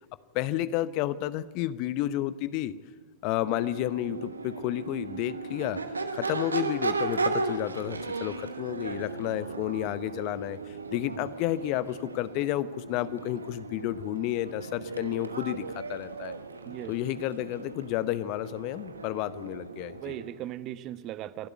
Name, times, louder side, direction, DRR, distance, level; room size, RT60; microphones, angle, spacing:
voice 1, 0.3-2.7 3.2-5.8 6.1-10.6 10.9-16.3 16.9-20.1, left 14 dB, 50° left, 16 dB, 0.9 m, -31 dB
Crowd / Race car auto racing / Accelerating revving vroom, 3.3-20.4, right 3 dB, 85° right, 1.2 m, -36 dB
voice 2, 19.9-21.5, right 13 dB, 40° right, 15 dB, 1.0 m, -38 dB
27.5 x 12.0 x 9.4 m, 1.5 s
figure-of-eight pair, 90°, 0 cm